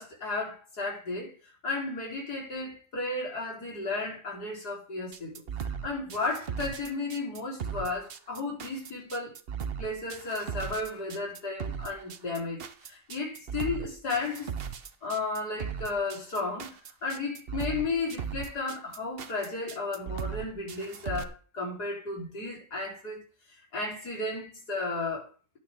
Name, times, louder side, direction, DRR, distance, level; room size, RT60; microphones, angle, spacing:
voice 1, 0.0-9.3 9.8-14.5 15.0-23.2 23.5-25.3, left 3 dB, 85° left, 4.5 m, -34 dB
sound 1, 5.1-21.2, right 7 dB, 45° right, 0.9 m, -37 dB
11.5 x 8.7 x 3.7 m
omnidirectional pair, 1.7 m